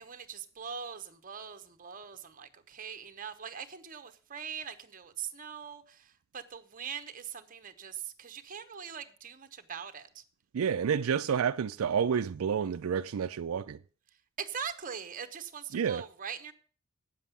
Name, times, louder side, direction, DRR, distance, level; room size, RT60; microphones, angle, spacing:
voice 1, 0.0-10.2 14.4-16.5, right 7 dB, 40° right, 1.0 m, -42 dB
voice 2, 10.5-13.8 15.7-16.0, right 7 dB, 85° right, 0.4 m, -29 dB
9.0 x 7.4 x 6.8 m
head